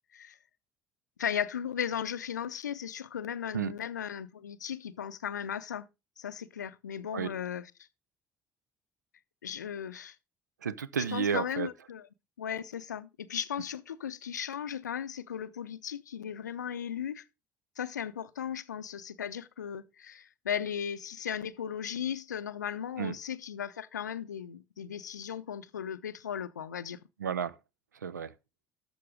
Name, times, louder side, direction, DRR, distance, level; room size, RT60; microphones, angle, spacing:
voice 1, 1.2-5.9 6.2-7.7 9.4-10.2 11.1-12.0 12.4-17.2 17.8-27.0, left 8 dB, 80° left, 0.5 m, -36 dB
voice 2, 10.6-11.7 23.0-23.2 27.2-27.6 28.0-28.3, right 7 dB, 80° right, 0.5 m, -32 dB
12.0 x 6.9 x 3.7 m
figure-of-eight pair, 55°, 9 cm